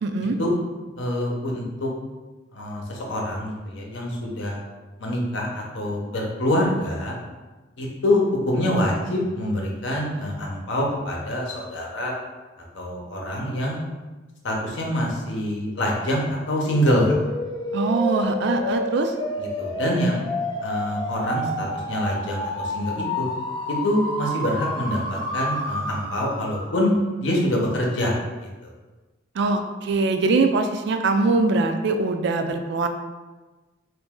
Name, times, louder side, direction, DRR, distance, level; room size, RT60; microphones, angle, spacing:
voice 1, 0.0-0.4 17.7-19.1 29.4-32.9, right 3 dB, 65° right, 6 dB, 0.3 m, -22 dB
voice 2, 1.0-1.9 2.5-4.6 5.0-7.2 7.8-12.1 12.7-13.8 14.4-17.2 19.4-20.2 20.6-23.3 23.7-26.9 27.2-28.7, left 1 dB, 75° left, -1 dB, 0.8 m, -25 dB
sound 1, 16.9-26.8, left 1 dB, 25° left, 0.5 m, -30 dB
3.0 x 2.6 x 3.6 m, 1.2 s
head